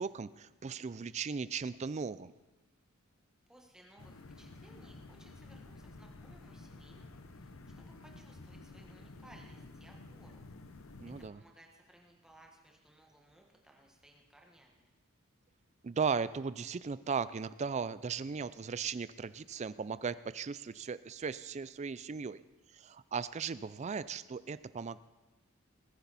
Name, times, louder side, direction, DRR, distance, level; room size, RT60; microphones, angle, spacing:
voice 1, 0.0-2.3 11.0-11.4 15.8-22.4 22.7-25.0, right 5 dB, 30° right, 16 dB, 0.3 m, -37 dB
voice 2, 3.5-7.5 7.8-10.4 11.3-14.9, right 1 dB, 5° right, 0 dB, 1.4 m, -61 dB
sound 1, 4.0-11.3, left 2 dB, 65° left, 0.8 m, -52 dB
20.0 x 10.5 x 4.1 m, 1.1 s
head